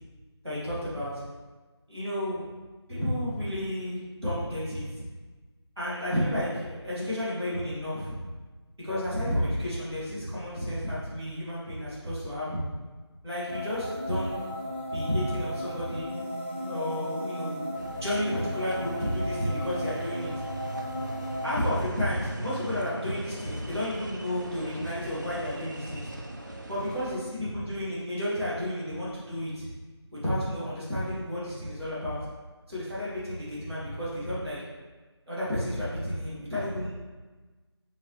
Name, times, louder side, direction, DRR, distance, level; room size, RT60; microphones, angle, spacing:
voice 1, 0.4-1.2 1.9-2.5 2.9-4.8 5.8-8.1 8.8-12.6 13.2-14.4 14.9-16.1 16.7-17.6 18.0-20.4 21.4-26.1 26.7-29.7 30.2-32.2 32.7-34.6 35.3-36.9, left 1 dB, 5° right, -22 dB, 0.8 m, -31 dB
sound 1, 13.5-21.5, left 1 dB, 25° left, 0.5 m, -35 dB
sound 2, 17.7-27.2, right 2 dB, 40° right, 0.4 m, -40 dB
5.9 x 2.8 x 3.2 m, 1.3 s
figure-of-eight pair, 170°, 15 cm